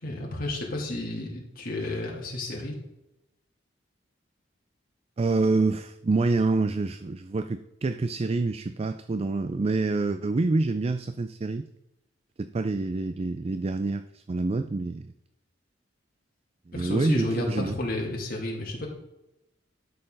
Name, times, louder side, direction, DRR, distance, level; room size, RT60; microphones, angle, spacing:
voice 1, 0.0-2.7 16.7-18.9, left 1 dB, 55° left, -2 dB, 2.8 m, -31 dB
voice 2, 5.2-11.7 12.4-15.1 16.8-17.7, right 3 dB, 35° right, 11 dB, 0.4 m, -27 dB
12.5 x 6.7 x 3.9 m, 0.89 s
head